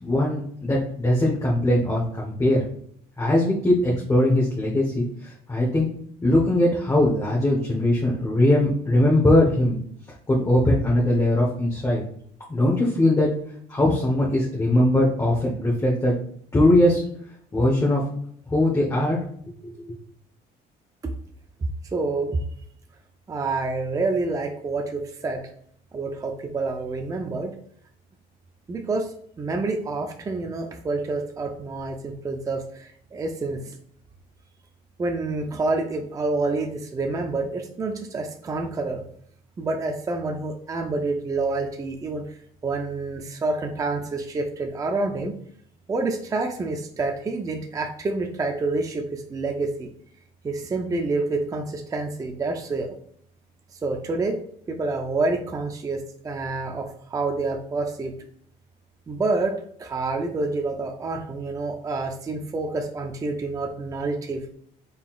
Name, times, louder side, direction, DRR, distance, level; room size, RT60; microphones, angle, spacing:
voice 1, 0.0-2.6 3.2-5.9 6.2-9.8 10.3-12.0 12.5-13.3 13.7-16.1 16.5-17.0 17.5-18.0 18.5-19.2 19.6-19.9, left 1 dB, 20° left, -4 dB, 1.0 m, -20 dB
voice 2, 21.9-22.4 23.3-25.4 25.9-27.5 28.7-29.1 29.4-33.7 35.0-39.0 39.6-42.2 42.6-45.4 45.9-49.9 50.4-52.9 53.8-54.4 54.7-58.1 59.1-64.4, right 3 dB, 20° right, 3 dB, 0.4 m, -28 dB
4.0 x 3.9 x 2.4 m, 0.65 s
cardioid pair, 110°, 17 cm